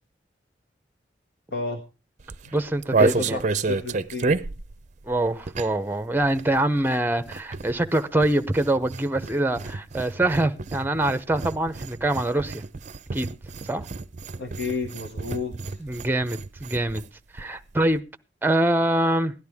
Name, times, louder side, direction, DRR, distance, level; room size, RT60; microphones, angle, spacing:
voice 1, 1.5-1.8 2.4-2.5 3.0-4.3 14.4-15.8, left 4 dB, 65° left, 1.4 m, -31 dB
sound 1, 2.2-5.9 6.2-17.1 17.4-17.5 17.7-18.0, right 3 dB, 45° right, 0.5 m, -30 dB
voice 2, 2.5-3.4 5.1-12.6 13.1-13.3 13.6-13.8 15.8-17.0 17.3-18.0 18.4-19.3, right 1 dB, 10° right, 0.7 m, -24 dB
17.0 x 11.5 x 3.5 m
head